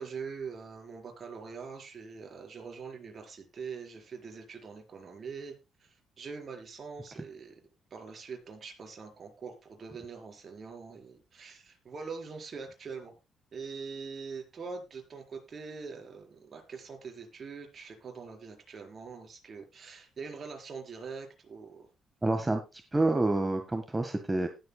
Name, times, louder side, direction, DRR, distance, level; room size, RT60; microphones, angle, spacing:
voice 1, 0.0-5.5 5.8-7.5 7.9-13.2 13.5-21.9, right 5 dB, 45° right, 3 dB, 4.3 m, -43 dB
voice 2, 22.2-24.5, right 2 dB, 15° right, 5 dB, 1.4 m, -28 dB
18.5 x 7.8 x 2.2 m, 0.25 s
cardioid pair, 90°, 0 cm